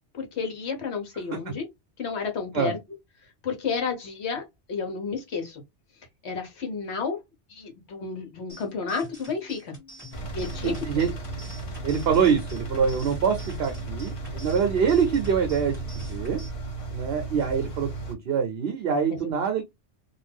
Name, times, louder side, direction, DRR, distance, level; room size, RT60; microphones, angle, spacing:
voice 1, 0.1-1.6 2.0-2.8 3.4-5.6 6.2-7.2 7.5-9.7 10.3-10.8 19.1-19.3, left 5 dB, 70° left, 1.1 m, -31 dB
sound 1, 8.5-16.5, left 2 dB, 15° left, 1.5 m, -47 dB
Engine, 10.1-18.1, right 2 dB, 35° left, 0.6 m, -35 dB
voice 2, 10.6-11.1 11.8-15.8 16.1-16.4 16.9-19.6, right 6 dB, 65° right, 0.8 m, -25 dB
2.5 x 2.2 x 3.3 m
omnidirectional pair, 1.2 m